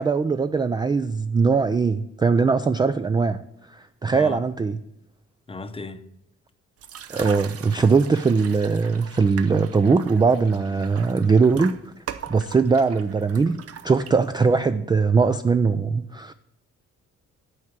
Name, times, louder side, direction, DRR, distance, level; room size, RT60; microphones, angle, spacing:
voice 1, 0.0-3.4 3.7-4.8 7.1-11.7 12.3-13.6 13.8-16.3, right 4 dB, 15° right, 0.3 m, -20 dB
voice 2, 4.1-4.4 5.5-6.1, left 3 dB, 20° left, 0.7 m, -35 dB
sound 1, 6.8-14.5, right 9 dB, 50° right, 0.7 m, -40 dB
9.5 x 4.6 x 7.4 m
cardioid pair, 90°, 30 cm